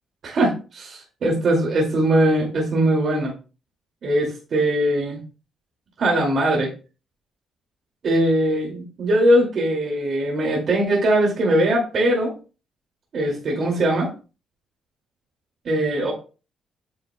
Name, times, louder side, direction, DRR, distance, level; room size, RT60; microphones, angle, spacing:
voice 1, 0.2-3.3 4.0-5.2 6.0-6.7 8.0-12.3 13.1-14.1 15.6-16.1, right 1 dB, 55° right, 0 dB, 2.4 m, -20 dB
8.7 x 6.8 x 2.3 m, 0.33 s
cardioid pair, 90°, 0 cm